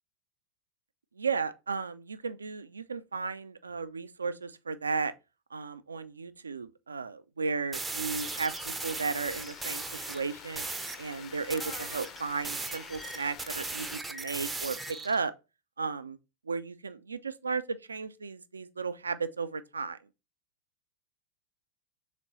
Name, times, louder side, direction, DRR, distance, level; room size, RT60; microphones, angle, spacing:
voice 1, 1.2-5.1 5.5-10.7 11.0-15.3 15.8-16.2 16.5-20.0, right 4 dB, 75° right, 0.3 m, -34 dB
sound 1, 7.7-10.2 10.6-11.0 11.5-15.2, right 3 dB, 10° right, 0.4 m, -38 dB
sound 2, 8.1-14.0, left 7 dB, 30° left, 0.6 m, -47 dB
3.6 x 3.1 x 3.9 m
figure-of-eight pair, 90°, 0 cm